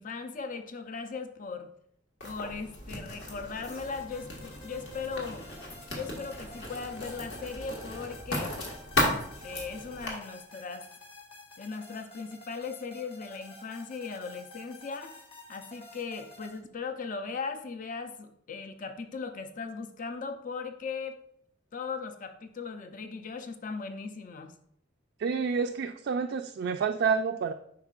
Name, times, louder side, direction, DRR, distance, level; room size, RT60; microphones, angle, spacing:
voice 1, 0.0-1.7 2.2-5.5 5.9-8.6 9.0-10.9 11.6-15.1 15.5-21.2 21.7-24.5, left 5 dB, 45° left, 8 dB, 0.6 m, -38 dB
Writing, 2.2-10.1, left 1 dB, 70° left, 1.7 m, -35 dB
sound 1, 3.7-16.6, left 2 dB, 30° left, 1.2 m, -51 dB
voice 2, 25.2-27.5, right 5 dB, 65° right, 5 dB, 0.3 m, -29 dB
7.9 x 5.5 x 2.4 m, 0.71 s
head